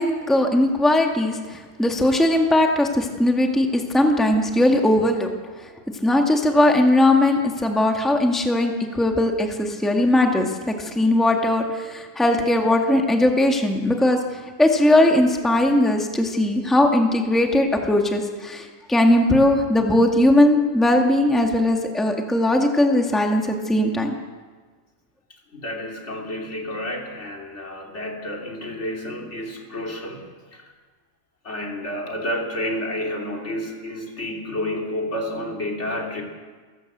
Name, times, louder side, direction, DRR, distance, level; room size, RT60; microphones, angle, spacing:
voice 1, 0.0-5.3 6.0-14.2 14.6-24.1, left 1 dB, ahead, 2 dB, 1.8 m, -19 dB
voice 2, 25.3-30.7 31.4-36.2, left 1 dB, 60° left, 0 dB, 3.4 m, -30 dB
29.0 x 12.5 x 8.0 m, 1.4 s
omnidirectional pair, 1.4 m